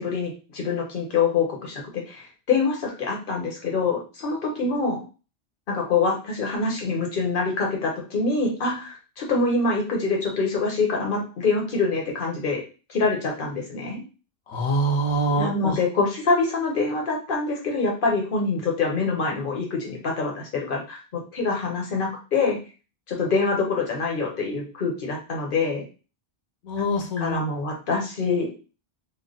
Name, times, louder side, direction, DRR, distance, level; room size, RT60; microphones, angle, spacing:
voice 1, 0.0-5.0 5.7-12.6 12.9-14.0 15.4-22.6 23.1-25.8 27.2-28.5, left 4 dB, 55° left, 0 dB, 1.2 m, -25 dB
voice 2, 14.5-15.8 26.6-27.4, right 1 dB, 85° left, 2 dB, 1.1 m, -24 dB
3.3 x 2.0 x 3.9 m, 0.34 s
omnidirectional pair, 1.1 m